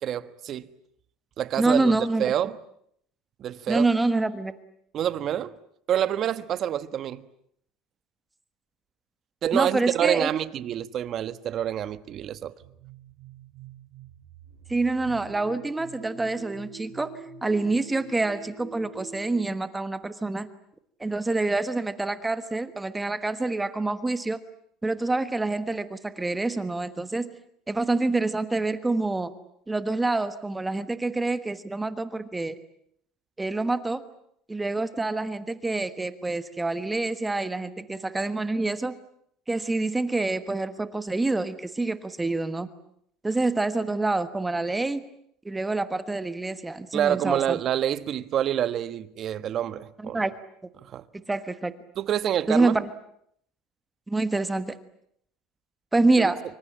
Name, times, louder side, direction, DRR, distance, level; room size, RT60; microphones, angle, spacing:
voice 1, 0.0-0.8 1.4-1.9 2.2-2.6 3.4-3.9 4.9-5.5 5.9-7.2 9.4-12.5 46.9-50.3 50.8-51.0 52.0-52.8, right 10 dB, 40° right, 1.3 m, -27 dB
voice 2, 1.6-2.2 3.7-4.5 9.5-10.3 14.7-20.5 21.0-24.4 24.8-27.3 27.7-29.3 29.7-32.5 33.4-34.0 34.5-39.0 39.5-42.7 43.2-45.0 45.4-47.6 50.1-50.3 51.3-51.7 52.5-52.9 54.1-54.7 55.9-56.4, right 2 dB, 10° right, 1.3 m, -26 dB
sound 1, 12.6-19.4, right 5 dB, 80° right, 3.7 m, -45 dB
26.0 x 25.0 x 8.7 m
cardioid pair, 140°, 0 cm